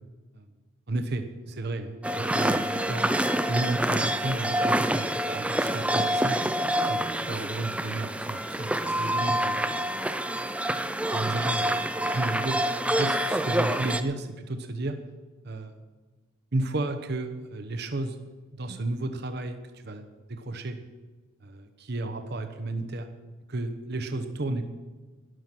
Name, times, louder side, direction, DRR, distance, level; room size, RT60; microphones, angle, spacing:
voice 1, 0.9-6.4 6.9-9.6 11.1-12.6 12.9-15.0 15.4-15.8 16.5-18.2 18.5-20.8 21.4-23.1 23.5-24.6, right 2 dB, 50° right, 7 dB, 0.9 m, -33 dB
sound 1, 2.0-14.0, right 1 dB, 5° right, 0.5 m, -27 dB
12.5 x 11.5 x 6.1 m, 1.3 s
head